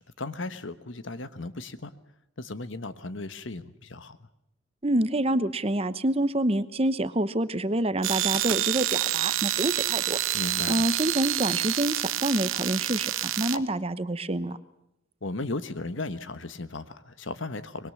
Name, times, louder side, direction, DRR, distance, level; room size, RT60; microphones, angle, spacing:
voice 1, 0.0-1.9 2.4-4.2 10.3-10.9 13.5-13.7 15.2-17.9, left 2 dB, 70° left, 12 dB, 1.3 m, -36 dB
voice 2, 4.8-10.2 10.7-13.1 13.4-14.6, right 1 dB, 30° right, 13 dB, 1.0 m, -27 dB
sound 1, 8.0-13.6, right 13 dB, 90° right, 0.9 m, -28 dB
24.5 x 21.5 x 7.1 m, 0.83 s
head